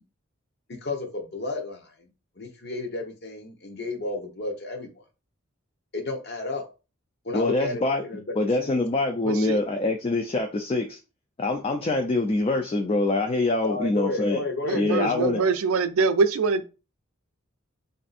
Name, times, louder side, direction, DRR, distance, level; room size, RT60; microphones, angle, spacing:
voice 1, 0.7-2.1 2.4-5.0 5.9-6.6 7.2-8.2 8.6-8.7 13.6-15.5, left 3 dB, 50° left, 0.8 m, -32 dB
voice 2, 7.3-8.0 8.4-11.0 11.4-14.4 14.7-15.4, left 2 dB, 25° left, 0.3 m, -24 dB
voice 3, 9.3-9.6 14.7-16.6, right 4 dB, 80° right, 0.4 m, -24 dB
3.3 x 2.6 x 4.0 m
head